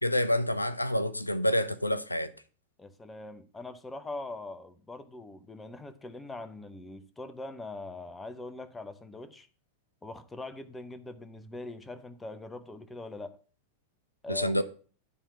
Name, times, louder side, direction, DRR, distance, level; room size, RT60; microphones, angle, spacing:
voice 1, 0.0-2.3 14.3-14.6, left 1 dB, 85° left, 0.4 m, -28 dB
voice 2, 2.8-9.5 10.0-13.4 14.2-14.6, left 2 dB, 10° left, 0.8 m, -42 dB
9.9 x 3.6 x 7.0 m
figure-of-eight pair, 90°, 0 cm